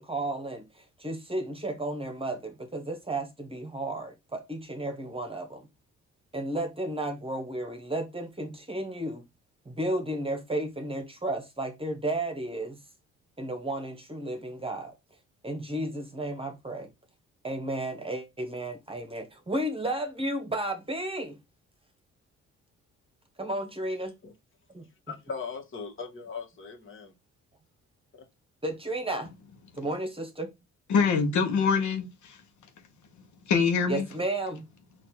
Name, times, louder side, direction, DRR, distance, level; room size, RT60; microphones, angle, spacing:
voice 1, 0.0-5.7 6.3-9.3 9.6-12.8 13.4-14.9 15.4-16.9 17.4-21.4 23.4-24.1 24.7-24.9 28.6-29.3 29.7-30.5 33.9-34.7, right 1 dB, 20° right, 1.2 m, -33 dB
voice 2, 25.1-27.1 28.1-28.2, left 5 dB, 45° left, 1.5 m, -39 dB
voice 3, 30.9-32.4 33.5-34.1, left 5 dB, 70° left, 0.9 m, -24 dB
4.2 x 2.6 x 4.3 m
cardioid pair, 90°, 30 cm